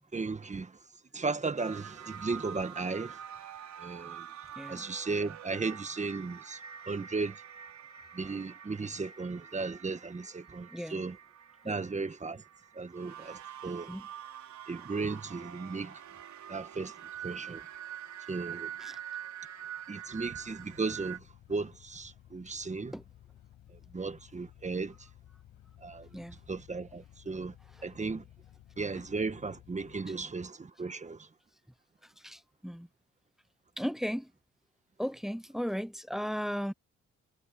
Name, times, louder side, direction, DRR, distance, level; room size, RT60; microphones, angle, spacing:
voice 1, 0.1-0.8 1.1-3.2 3.8-4.3 4.7-6.6 6.9-7.4 8.1-11.2 11.6-12.4 12.7-13.9 14.7-16.0 16.5-16.9 17.2-17.6 18.3-18.7 19.9-21.2 21.5-22.9 23.7-24.9 25.8-26.2 26.5-27.5 27.8-28.2 28.8-31.3, right 4 dB, 25° right, 1.6 m, -35 dB
sound 1, 1.6-21.2, right 9 dB, 65° right, 5.1 m, -46 dB
voice 2, 4.6-4.9 10.7-11.0 11.6-11.7 13.9-14.1 18.8-19.0 22.9-23.0 26.1-26.4 32.2-32.9 33.8-34.3 35.0-36.7, equal, ahead, 0.7 m, -36 dB
sound 2, 20.1-30.0, left 12 dB, 80° left, 5.8 m, -57 dB
cardioid pair, 90°, 30 cm